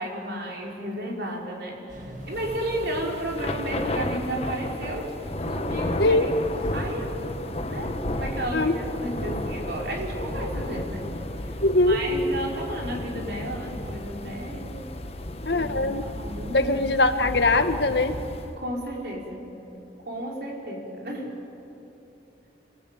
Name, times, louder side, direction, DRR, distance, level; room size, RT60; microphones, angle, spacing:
voice 1, 0.0-5.1 5.4-6.3 6.7-7.2 7.7-11.0 11.4-11.5 11.8-14.9 15.5-16.8 18.6-19.5 20.0-21.3, right 1 dB, 60° right, -1 dB, 5.7 m, -33 dB
sound 1, 1.9-18.3, equal, 45° right, 2.9 m, -45 dB
Thunder / Rain, 2.3-18.6, left 1 dB, 35° left, 1.4 m, -33 dB
voice 2, 6.0-6.3 8.5-8.7 11.6-12.0 15.4-16.1 16.5-18.2, left 2 dB, 75° left, 8 dB, 1.6 m, -21 dB
28.0 x 22.5 x 9.4 m, 2.9 s
head